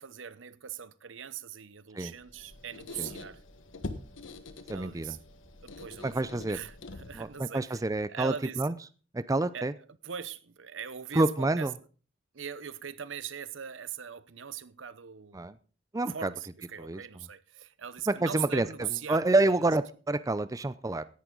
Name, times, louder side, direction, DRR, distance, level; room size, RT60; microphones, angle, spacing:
voice 1, 0.0-3.4 4.7-5.2 5.6-7.8 8.1-8.6 9.5-9.7 10.0-11.7 12.3-15.6 16.1-19.3, right 8 dB, 75° right, 0.8 m, -40 dB
Squeak, 2.2-7.4, left 2 dB, 85° left, 1.3 m, -44 dB
voice 2, 4.7-5.2 6.0-6.6 7.1-8.7 9.1-9.7 11.1-11.7 15.3-15.5 15.9-16.3 16.8-17.0 18.1-21.0, right 2 dB, 20° right, 0.5 m, -28 dB
16.5 x 11.0 x 3.9 m
head